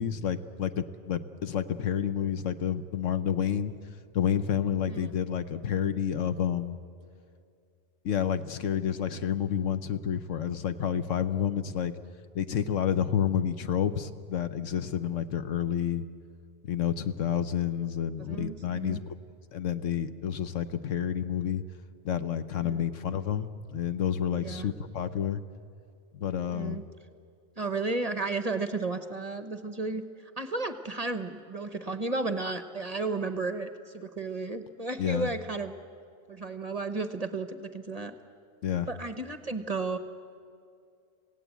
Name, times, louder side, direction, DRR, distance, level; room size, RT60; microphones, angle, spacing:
voice 1, 0.0-3.8 4.1-6.8 8.0-11.9 12.3-16.0 16.6-19.1 19.5-21.6 22.0-25.4 26.1-26.8 35.0-35.3 38.6-38.9, left 9 dB, 70° left, 11 dB, 1.2 m, -29 dB
voice 2, 18.2-19.0 22.6-22.8 24.4-24.7 26.5-26.8 27.6-35.7 36.3-38.1 38.9-40.0, right 3 dB, 35° right, 9 dB, 0.9 m, -33 dB
27.5 x 16.5 x 8.3 m, 2.4 s
omnidirectional pair, 1.4 m